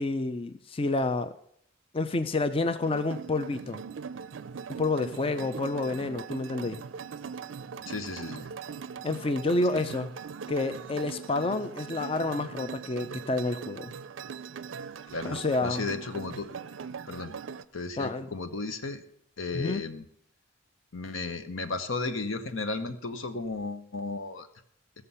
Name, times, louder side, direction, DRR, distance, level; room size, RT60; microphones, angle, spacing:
voice 1, 0.0-1.3 1.9-3.8 4.7-6.8 9.0-10.1 10.5-13.9 15.2-15.9 18.0-18.3 19.5-19.8, left 2 dB, 30° left, 10 dB, 0.4 m, -29 dB
sound 1, 2.8-17.6, right 6 dB, 65° right, 0.4 m, -40 dB
voice 2, 7.9-8.5 9.7-9.8 15.1-16.5 17.1-17.3 17.7-19.0 19.4-20.0 20.9-24.5, left 3 dB, 85° left, 8 dB, 1.0 m, -34 dB
16.0 x 6.7 x 5.6 m, 0.70 s
head